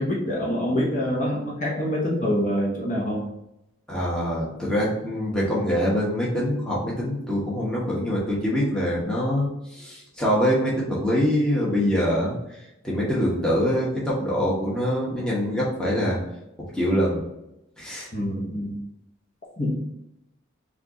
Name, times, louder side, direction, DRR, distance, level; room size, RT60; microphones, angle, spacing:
voice 1, 0.0-3.3 18.1-18.7 19.6-19.8, equal, 40° left, -4 dB, 0.9 m, -25 dB
voice 2, 3.9-12.3 12.8-16.2 16.7-17.2 17.8-18.1, equal, 5° left, -7 dB, 1.1 m, -24 dB
4.4 x 2.4 x 3.9 m, 0.87 s
head